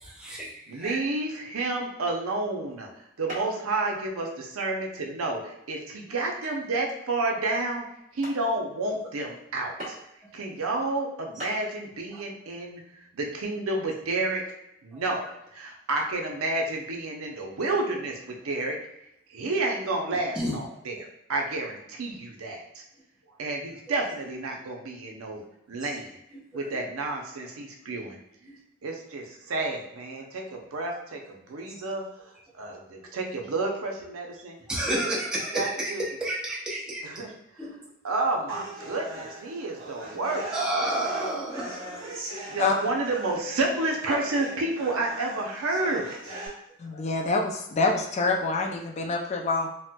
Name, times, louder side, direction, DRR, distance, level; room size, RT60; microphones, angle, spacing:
voice 1, 0.0-1.0 11.4-11.5 12.1-12.2 14.9-15.0 20.3-20.5 25.7-26.0 26.3-26.8 28.5-28.6 32.7-32.8 34.3-37.1 37.6-37.8 40.5-42.2, right 1 dB, 5° right, -6 dB, 0.6 m, -31 dB
voice 2, 0.7-2.9 3.2-7.9 8.1-10.0 10.3-14.4 14.8-15.2 15.5-18.8 19.3-21.0 21.3-22.8 23.4-25.4 25.7-26.2 26.5-28.2 28.8-34.6 35.0-35.1 35.5-36.0 37.0-37.3 38.0-40.5 42.5-46.1 46.8-46.9, right 2 dB, 90° right, 1 dB, 0.6 m, -30 dB
sound 1, 2.1-2.3 3.3-3.7 4.1-4.5 5.0-5.2 5.7-6.0 6.6-6.7 7.2-7.3 7.8-7.9 8.2-8.5 9.8-10.2 11.0-11.1 11.4-11.6, right 1 dB, 35° right, 1.2 m, -40 dB
sound 2, 38.5-46.5, right 1 dB, 70° right, 1.0 m, -40 dB
voice 3, 46.8-49.7, left 3 dB, 30° left, 1 dB, 0.3 m, -26 dB
4.1 x 2.1 x 2.2 m, 0.83 s
head